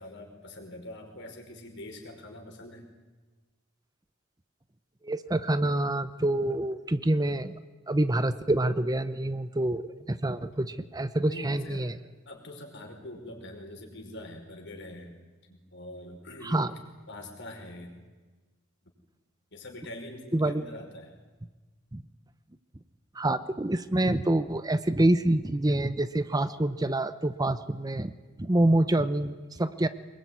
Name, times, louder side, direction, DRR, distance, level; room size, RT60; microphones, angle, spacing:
voice 1, 0.0-2.8 11.2-11.9 12.3-15.1 15.5-16.6 17.1-17.9 19.5-21.2, left 1 dB, 60° left, 3 dB, 5.4 m, -44 dB
voice 2, 5.0-7.5 7.9-11.9 16.4-16.7 20.3-20.6 21.9-22.0 23.1-28.1 28.4-29.9, right 1 dB, 20° right, 12 dB, 0.8 m, -26 dB
24.0 x 21.5 x 9.6 m, 1.3 s
head